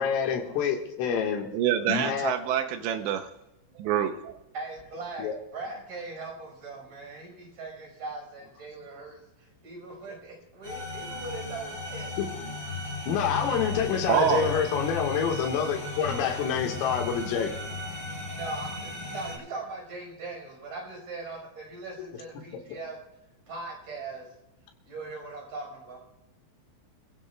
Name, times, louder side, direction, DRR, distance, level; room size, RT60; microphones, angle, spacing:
voice 1, 0.0-1.5 1.9-2.4 5.2-5.4 12.2-12.3 13.1-17.5 22.0-22.1, left 7 dB, 90° left, 4.3 m, -27 dB
voice 2, 1.5-3.3 3.8-4.4 14.1-14.5, right 10 dB, 80° right, 2.7 m, -26 dB
voice 3, 4.5-12.2 18.3-23.0 23.5-24.3 24.9-26.0, right 3 dB, 35° right, 6.2 m, -40 dB
sound 1, 10.6-19.4, left 2 dB, 20° left, 7.7 m, -35 dB
28.0 x 16.0 x 2.3 m
omnidirectional pair, 5.7 m